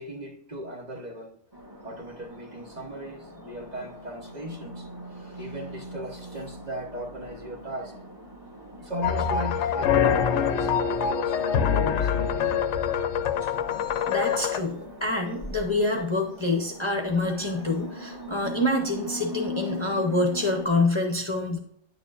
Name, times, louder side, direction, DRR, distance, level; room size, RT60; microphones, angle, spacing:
voice 1, 0.0-1.3 1.8-8.0 8.8-12.7 19.9-20.0, equal, 35° right, 1 dB, 1.0 m, -38 dB
sound 1, 1.5-20.7, left 1 dB, 15° right, 2.0 m, -41 dB
sound 2, 9.0-14.6, left 8 dB, 70° left, 0.8 m, -24 dB
voice 2, 14.1-21.6, left 2 dB, 25° left, 1 dB, 0.8 m, -26 dB
9.8 x 6.9 x 2.5 m, 0.69 s
omnidirectional pair, 1.4 m